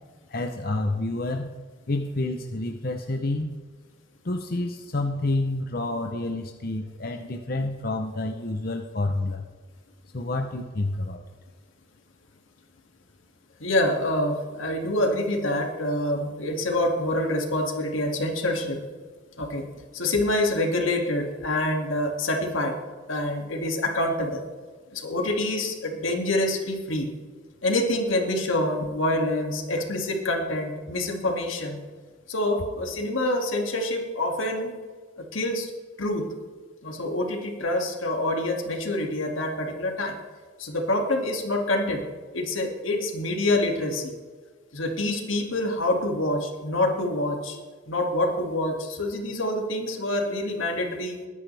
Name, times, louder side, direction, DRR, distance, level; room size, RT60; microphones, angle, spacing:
voice 1, 0.3-1.5 1.9-3.6 4.2-9.4 10.1-11.2, left 2 dB, 50° left, 4 dB, 0.7 m, -29 dB
voice 2, 13.6-18.8 19.4-19.6 19.9-22.8 23.1-24.4 24.9-27.1 27.6-31.8 32.3-34.7 35.3-35.7 36.0-36.3 36.8-40.2 40.6-42.0 42.3-44.1 44.7-47.6 47.9-51.2, left 1 dB, 85° left, 2 dB, 2.3 m, -26 dB
21.5 x 9.9 x 3.4 m, 1.5 s
head